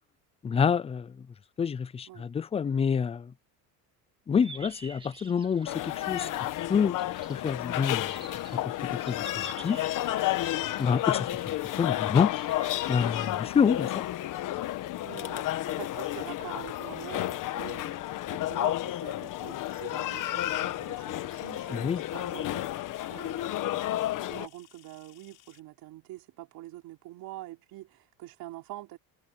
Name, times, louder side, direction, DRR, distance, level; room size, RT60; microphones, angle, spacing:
voice 1, 0.4-1.1 1.6-3.3 4.3-6.3 6.7-6.9 7.3-8.2 8.5-8.7 9.1-9.8 10.8-11.3 11.8-12.3 12.9-14.0 21.7-22.0, left 6 dB, 15° left, 0.4 m, -27 dB
sound 1, 4.3-13.4, right 3 dB, 15° right, 1.7 m, -50 dB
sound 2, 5.7-24.5, left 14 dB, 55° left, 1.3 m, -32 dB
voice 2, 15.0-17.9 18.3-29.0, right 16 dB, 65° right, 3.7 m, -45 dB
sound 3, 16.9-25.6, left 18 dB, 75° left, 4.5 m, -60 dB
cardioid pair, 140°, 38 cm